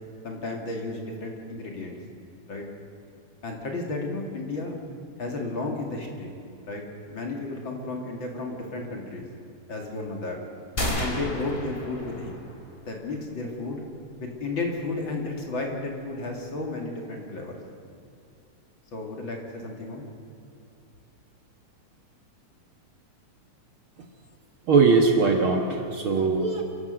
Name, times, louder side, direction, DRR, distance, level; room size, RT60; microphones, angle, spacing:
voice 1, 0.2-2.0 2.5-2.6 3.4-4.8 5.2-6.3 6.6-6.8 7.1-9.3 9.7-10.4 11.0-12.4 12.9-13.8 14.2-17.6 18.9-20.0, left 2 dB, 45° left, 1 dB, 2.8 m, -33 dB
sound 1, 10.8-12.7, left 1 dB, 20° left, 2.5 m, -31 dB
voice 2, 24.7-26.6, right 4 dB, 55° right, 2 dB, 1.9 m, -20 dB
29.5 x 11.5 x 7.7 m, 2.6 s
omnidirectional pair, 3.3 m